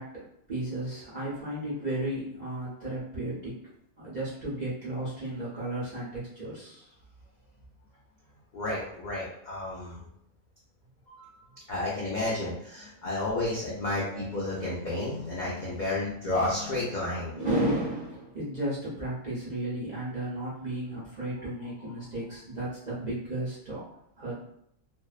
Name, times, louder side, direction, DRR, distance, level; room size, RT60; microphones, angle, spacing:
voice 1, 0.0-3.6 4.0-6.9 11.1-11.6 17.3-23.8 24.2-24.4, right 1 dB, 45° right, -9 dB, 0.5 m, -34 dB
voice 2, 8.5-10.0 11.7-17.4, left 2 dB, 80° left, -6 dB, 0.4 m, -31 dB
2.6 x 2.1 x 2.3 m, 0.73 s
omnidirectional pair, 1.5 m